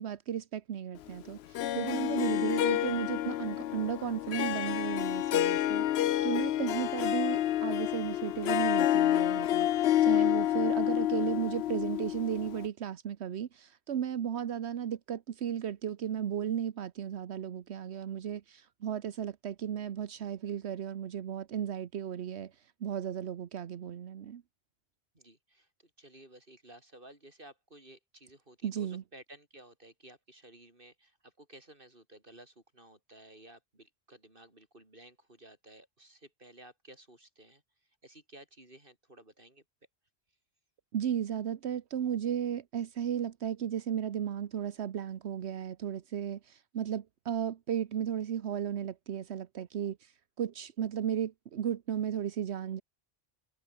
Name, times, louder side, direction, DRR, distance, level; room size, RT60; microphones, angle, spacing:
voice 1, 0.0-24.4 28.6-29.0 40.9-52.8, right 9 dB, 80° right, 1.1 m, -35 dB
Harp, 1.5-12.7, left 12 dB, 75° left, 0.8 m, -29 dB
voice 2, 25.1-37.6 38.0-39.6, right 1 dB, 50° right, 5.8 m, -55 dB
omnidirectional pair, 1.1 m